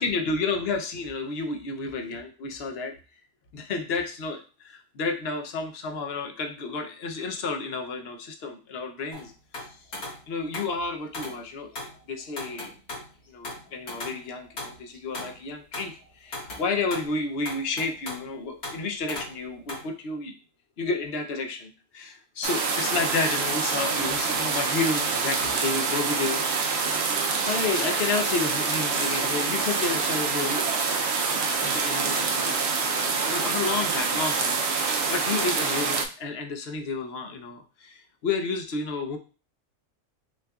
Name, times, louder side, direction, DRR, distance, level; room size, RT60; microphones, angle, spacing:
voice 1, 0.0-2.9 3.5-9.3 9.6-9.8 10.3-11.7 12.1-12.7 13.3-20.3 20.8-27.0 27.4-30.7 31.6-39.2, left 4 dB, 55° left, 5 dB, 0.7 m, -31 dB
sound 1, 9.1-10.8 11.1-11.4 11.7-12.0 12.4-13.1 13.4-15.4 15.7-16.0 16.3-17.1 17.5-18.3 18.6-18.8 19.1-19.4 19.7-19.8, left 2 dB, 90° left, 2.2 m, -37 dB
sound 2, 22.4-36.1, right 4 dB, 65° right, 0.7 m, -26 dB
6.1 x 2.5 x 2.3 m, 0.35 s
omnidirectional pair, 1.5 m